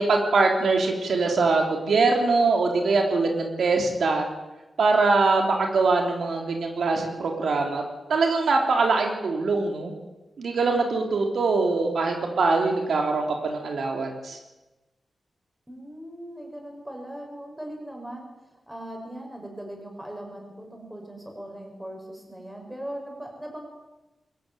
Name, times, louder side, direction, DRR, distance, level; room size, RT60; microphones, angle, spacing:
voice 1, 0.0-4.2 4.8-7.8 8.1-9.9 10.4-14.4, right 3 dB, 80° right, 2 dB, 3.7 m, -23 dB
voice 2, 15.7-18.3 18.7-23.7, right 1 dB, 10° right, 1 dB, 6.8 m, -39 dB
22.5 x 14.0 x 9.4 m, 1.0 s
wide cardioid pair, 105°, 0 cm